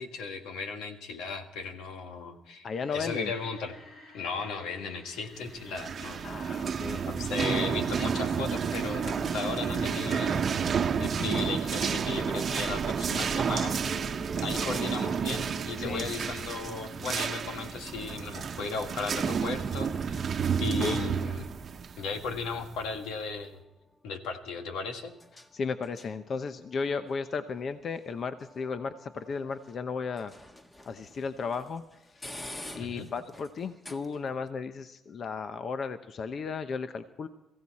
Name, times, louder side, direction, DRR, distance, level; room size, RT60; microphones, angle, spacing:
voice 1, 0.0-2.7 2.9-3.8 4.1-6.3 7.1-10.7 11.0-13.8 14.4-20.3 20.6-21.5 22.0-23.6 24.0-25.1 32.8-33.1, left 4 dB, 90° left, 6 dB, 1.7 m, -36 dB
voice 2, 2.6-3.3 6.2-7.0 15.8-16.1 20.8-21.0 25.5-30.3 30.8-31.8 32.1-32.4 32.7-37.3, left 5 dB, 55° left, 10 dB, 0.8 m, -35 dB
sound 1, 2.7-21.2, left 2 dB, 70° left, 6.4 m, -48 dB
sound 2, 5.6-23.0, right 6 dB, 50° right, 0.9 m, -31 dB
sound 3, 19.6-34.5, left 1 dB, 20° left, 1.6 m, -52 dB
22.0 x 15.5 x 4.2 m, 0.95 s
cardioid pair, 90°, 0 cm